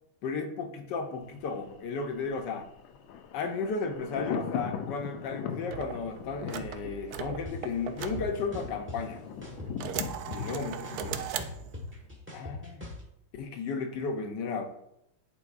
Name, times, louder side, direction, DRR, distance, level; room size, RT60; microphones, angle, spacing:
voice 1, 0.2-2.7 3.3-9.2 10.3-11.3 12.3-12.8 13.4-14.7, left 4 dB, 70° left, 5 dB, 1.3 m, -34 dB
Thunder, 1.2-12.1 12.4-12.5, left 7 dB, 85° left, 1.4 m, -41 dB
sound 1, 5.7-9.0 9.4-12.0, right 9 dB, 80° right, 0.8 m, -38 dB
sound 2, 7.5-7.6 8.0-9.0 9.4-10.5 10.8-13.0, left 2 dB, 10° right, 1.0 m, -41 dB
11.0 x 4.5 x 2.4 m, 0.79 s
omnidirectional pair, 2.1 m